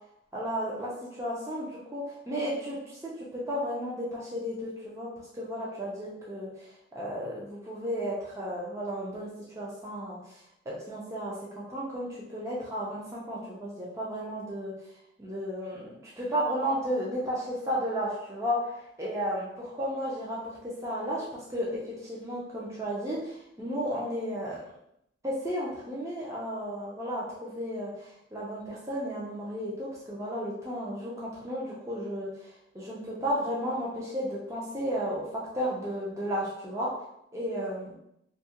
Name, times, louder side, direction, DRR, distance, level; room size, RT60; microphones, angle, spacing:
voice 1, 0.3-5.1 5.3-6.7 6.9-10.4 10.7-14.7 15.2-24.6 25.2-32.5 32.7-35.3 35.5-36.9 37.3-37.9, equal, 15° right, -6 dB, 0.4 m, -33 dB
2.7 x 2.3 x 2.8 m, 0.77 s
head